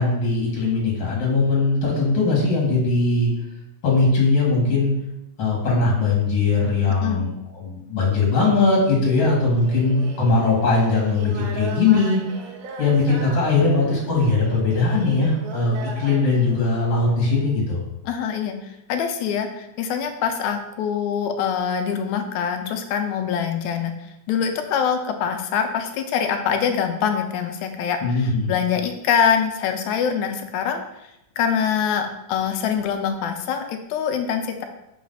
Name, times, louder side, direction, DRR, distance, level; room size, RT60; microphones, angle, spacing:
voice 1, 0.0-3.3 3.8-4.9 5.4-12.2 12.8-17.8 28.0-28.5, left 3 dB, 45° left, -3 dB, 2.2 m, -20 dB
sound 1, 9.6-17.5, right 4 dB, 80° right, 2.2 m, -38 dB
voice 2, 18.1-23.9 24.3-30.8 31.4-34.6, left 7 dB, 80° left, 6 dB, 1.8 m, -24 dB
5.7 x 3.1 x 5.4 m, 0.85 s
omnidirectional pair, 3.7 m